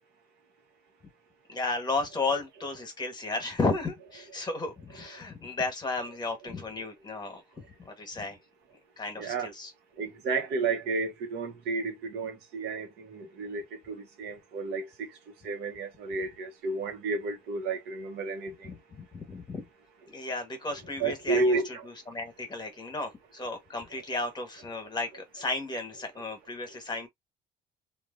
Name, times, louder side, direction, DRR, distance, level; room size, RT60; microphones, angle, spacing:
voice 1, 1.5-7.4 7.8-8.4 9.0-9.7 18.6-19.6 20.1-21.6 21.8-27.1, left 3 dB, 25° left, 1.2 m, -34 dB
voice 2, 9.2-9.5 10.0-15.1 15.4-18.5 21.0-21.8, right 3 dB, 80° right, 1.1 m, -31 dB
3.0 x 2.5 x 2.5 m
cardioid pair, 110°, 17 cm